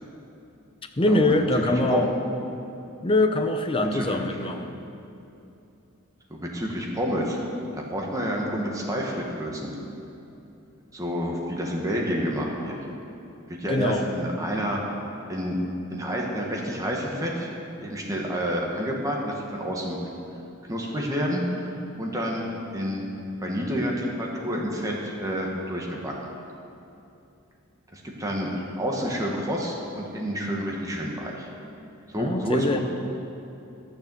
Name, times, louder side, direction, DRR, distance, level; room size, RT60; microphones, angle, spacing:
voice 1, 1.0-2.1 3.0-4.7 13.7-14.1 32.1-32.8, left 2 dB, 25° left, 6 dB, 0.7 m, -23 dB
voice 2, 1.6-2.1 3.9-4.3 6.3-7.4 7.7-9.7 10.9-12.8 13.5-14.8 15.3-15.6 15.9-17.5 17.8-20.0 20.7-23.1 23.4-26.1 27.9-31.5 32.1-32.8, equal, 15° right, -2 dB, 1.4 m, -29 dB
11.5 x 6.9 x 7.0 m, 2.8 s
head